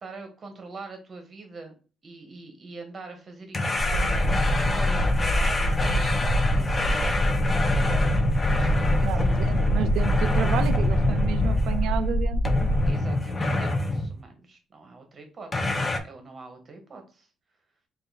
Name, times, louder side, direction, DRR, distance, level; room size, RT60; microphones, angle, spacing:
voice 1, 0.0-1.7 2.0-4.3 4.7-7.2 7.8-8.1 8.5-9.1 12.8-17.3, right 3 dB, 30° right, 5 dB, 1.0 m, -43 dB
sound 1, 3.5-12.0 12.4-14.2 15.5-16.0, left 2 dB, 20° left, 0.5 m, -26 dB
sound 2, 3.8-12.9, equal, 80° left, 0.9 m, -25 dB
voice 2, 9.0-12.8, right 8 dB, 75° right, 10 dB, 0.4 m, -31 dB
3.7 x 2.5 x 3.9 m, 0.36 s
cardioid pair, 140°, 0 cm